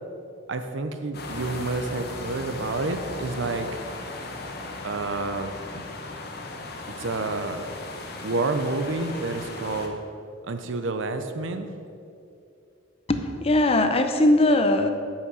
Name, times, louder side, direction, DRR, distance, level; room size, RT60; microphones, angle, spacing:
voice 1, 0.5-3.8 4.8-5.8 7.0-7.7 8.2-10.0 10.4-11.7, right 3 dB, 80° right, 8 dB, 0.6 m, -29 dB
sound 1, 1.1-9.9, left 2 dB, 55° left, 1.0 m, -37 dB
voice 2, 13.1-14.9, left 1 dB, 30° left, 7 dB, 0.6 m, -20 dB
8.3 x 5.9 x 6.2 m, 2.6 s
head